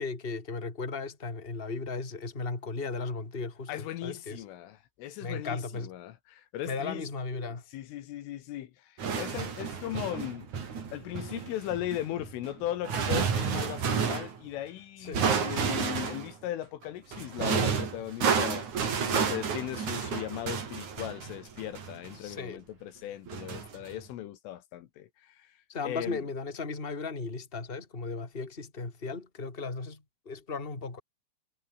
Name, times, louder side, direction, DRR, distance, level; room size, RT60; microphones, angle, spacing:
voice 1, 0.0-4.4 5.2-5.9 6.6-7.6 15.0-15.3 22.1-22.6 25.7-31.0, left 4 dB, 15° left, 3.0 m, -36 dB
voice 2, 3.7-7.0 7.7-10.5 10.9-18.7 19.0-25.5 25.9-26.2, left 13 dB, 75° left, 4.0 m, -38 dB
sound 1, 9.0-14.4 15.1-16.3 17.1-22.3 23.3-24.0, right 6 dB, 40° right, 4.2 m, -31 dB
omnidirectional pair, 6.0 m